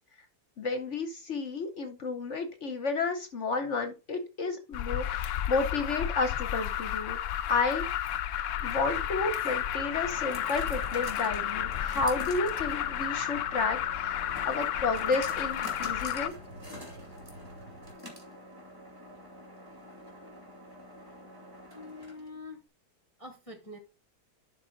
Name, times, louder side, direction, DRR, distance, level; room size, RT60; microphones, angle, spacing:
voice 1, 0.6-7.2 7.5-7.8 8.6-16.3, left 3 dB, 55° left, 0.9 m, -31 dB
Alarm, 4.7-16.3, left 11 dB, 80° left, 0.7 m, -32 dB
sound 1, 8.5-22.4, equal, 10° right, 2.2 m, -47 dB
sound 2, 8.5-17.9, right 1 dB, 80° right, 3.4 m, -50 dB
voice 2, 21.7-22.6 23.2-23.8, left 2 dB, 25° left, 0.8 m, -44 dB
11.5 x 4.1 x 3.9 m
omnidirectional pair, 1.9 m